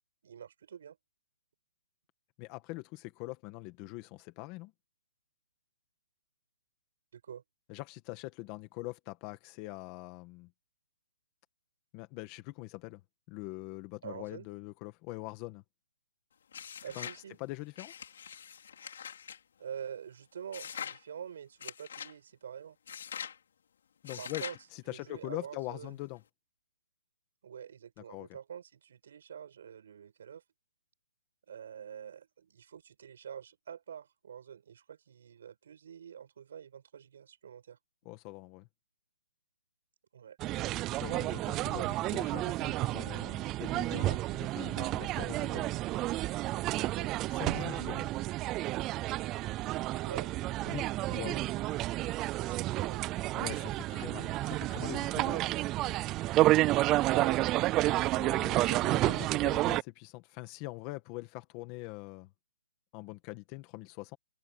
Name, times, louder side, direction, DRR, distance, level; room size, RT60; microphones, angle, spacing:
voice 1, 0.2-1.0 7.1-7.4 14.0-14.5 16.8-17.4 19.6-22.8 24.2-24.6 24.9-26.0 27.4-30.4 31.5-37.8 40.1-40.4 46.8-47.2 50.0-50.4 52.5-53.1 57.1-57.4, right 8 dB, 50° right, 7.9 m, -46 dB
voice 2, 2.4-4.7 7.7-10.5 11.9-13.0 13.3-15.6 16.9-17.1 17.4-17.9 24.0-24.4 24.7-26.2 28.0-28.3 38.1-38.7 40.9-45.7 47.3-48.1 50.6-51.4 53.3-55.5 58.0-62.3 62.9-64.2, left 20 dB, 20° left, 1.8 m, -43 dB
sound 1, 16.5-17.2 17.8-19.4 20.5-21.0 21.6-22.1 22.9-23.4 24.1-24.6, left 8 dB, 55° left, 4.5 m, -43 dB
sound 2, 40.4-59.8, right 17 dB, 15° right, 0.3 m, -30 dB
hypercardioid pair, 170°, 0 cm